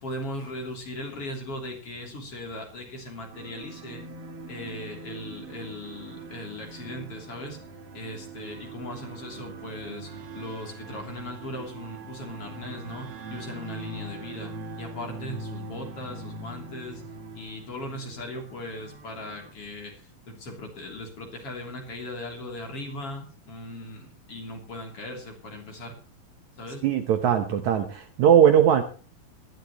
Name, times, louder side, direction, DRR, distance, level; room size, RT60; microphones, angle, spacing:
voice 1, 0.0-4.0 4.5-7.6 7.9-17.0 17.3-26.0 26.6-26.9, left 1 dB, 40° left, 2 dB, 3.9 m, -38 dB
sound 1, 3.3-19.5, right 3 dB, 50° right, 2.1 m, -42 dB
voice 2, 26.8-28.8, right 9 dB, 65° right, 7 dB, 2.0 m, -19 dB
19.5 x 13.0 x 3.1 m, 0.35 s
omnidirectional pair, 4.2 m